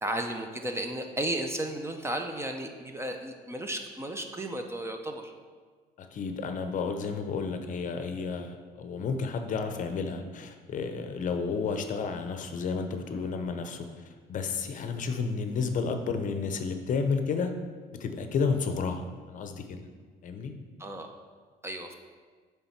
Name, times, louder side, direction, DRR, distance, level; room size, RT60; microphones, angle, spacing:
voice 1, 0.0-5.3 20.8-21.1 21.6-21.9, right 1 dB, 15° right, 4 dB, 0.6 m, -34 dB
voice 2, 6.0-17.5 18.0-19.8 20.2-20.5, left 5 dB, 50° left, 7 dB, 0.6 m, -31 dB
7.0 x 3.5 x 5.8 m, 1.5 s
cardioid pair, 110°, 17 cm